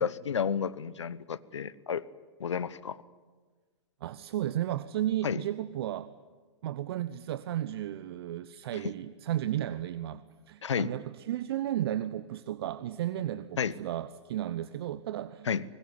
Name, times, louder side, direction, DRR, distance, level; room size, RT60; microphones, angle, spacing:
voice 1, 0.0-2.0 2.4-3.0 5.2-5.4 8.8-8.9 10.6-10.9 13.6-13.7 15.4-15.6, left 7 dB, 75° left, 17 dB, 1.2 m, -31 dB
voice 2, 4.0-6.1 6.6-15.5, right 12 dB, 55° right, 14 dB, 1.0 m, -34 dB
26.0 x 20.0 x 9.7 m, 1.4 s
figure-of-eight pair, 110°, 15 cm